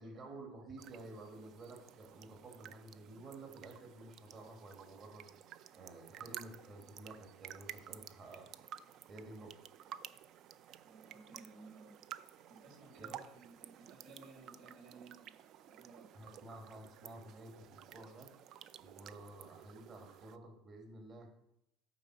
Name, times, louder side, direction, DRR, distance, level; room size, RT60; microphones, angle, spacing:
voice 1, 0.0-5.3 5.7-8.5 9.1-9.7 13.0-13.2 16.1-18.3 18.8-21.3, right 2 dB, 35° right, 2 dB, 1.9 m, -52 dB
sound 1, 0.8-20.4, right 10 dB, 55° right, 0.4 m, -53 dB
voice 2, 7.9-8.4 10.9-11.9 12.5-16.1, right 4 dB, 80° right, -2 dB, 3.6 m, -57 dB
8.9 x 4.1 x 6.0 m, 0.80 s
supercardioid pair, 115°, 0 cm